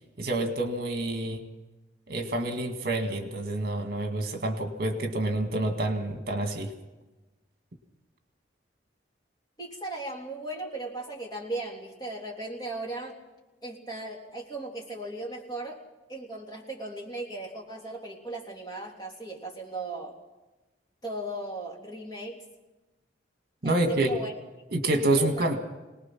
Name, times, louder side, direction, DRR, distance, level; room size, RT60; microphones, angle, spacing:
voice 1, 0.2-1.4 2.1-6.7 23.6-24.1 24.7-25.6, right 2 dB, 55° right, 5 dB, 2.1 m, -28 dB
voice 2, 9.6-13.2 13.6-15.8 16.1-20.2 21.0-22.4 23.6-24.3 25.0-25.5, right 2 dB, 20° left, -1 dB, 3.5 m, -37 dB
25.0 x 19.0 x 6.1 m, 1.1 s
head